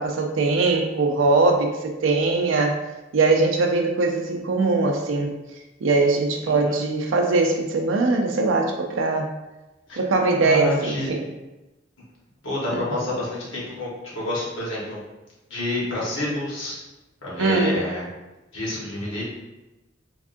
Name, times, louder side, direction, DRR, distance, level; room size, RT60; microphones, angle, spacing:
voice 1, 0.0-2.8 3.1-5.3 5.8-9.3 10.0-11.3 17.4-17.7, right 3 dB, 85° right, 3 dB, 0.4 m, -21 dB
voice 2, 6.4-6.8 9.9-10.0 10.4-11.1 12.4-15.0 15.5-16.8 17.2-18.0 18.5-19.2, left 1 dB, 90° left, -6 dB, 1.2 m, -28 dB
3.5 x 2.3 x 2.5 m, 1.0 s
head